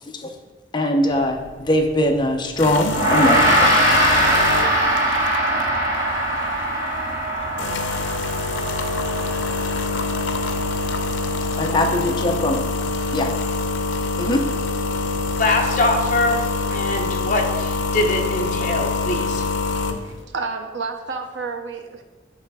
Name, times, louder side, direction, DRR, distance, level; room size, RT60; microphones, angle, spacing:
voice 1, 0.7-3.7 11.6-12.6 13.1-13.3 14.2-14.4, left 1 dB, 25° left, 3 dB, 0.7 m, -21 dB
sound 1, 1.1-20.2, left 3 dB, 85° left, 0.6 m, -26 dB
Gong, 2.9-12.4, right 1 dB, 15° right, 1.9 m, -22 dB
voice 2, 15.4-16.4 16.7-19.4, left 2 dB, 45° left, 0 dB, 1.0 m, -22 dB
voice 3, 16.7-17.0 19.7-22.0, right 4 dB, 85° right, 5 dB, 0.6 m, -31 dB
8.7 x 3.3 x 4.7 m, 1.2 s
head